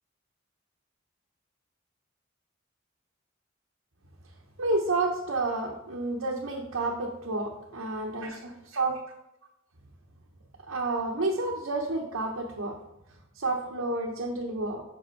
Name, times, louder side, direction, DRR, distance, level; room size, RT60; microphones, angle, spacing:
voice 1, 4.6-9.0 10.7-12.8 13.4-14.8, right 2 dB, 90° right, 0 dB, 0.9 m, -30 dB
6.3 x 5.2 x 4.5 m, 0.89 s
head